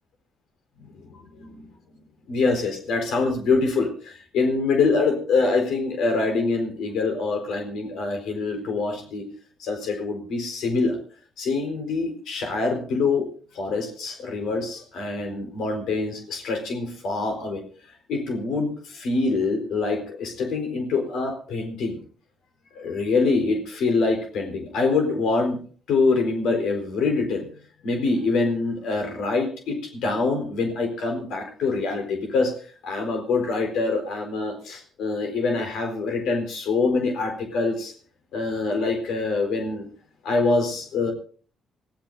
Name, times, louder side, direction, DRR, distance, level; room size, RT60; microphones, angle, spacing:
voice 1, 0.8-1.7 2.3-9.2 9.6-11.0 11.4-13.3 13.5-17.6 17.9-22.0 22.7-25.6 25.9-27.5 27.8-37.9 38.3-39.9 40.2-41.1, left 3 dB, 80° left, 4 dB, 4.2 m, -25 dB
26.0 x 15.5 x 2.6 m, 0.42 s
cardioid pair, 90°, 0 cm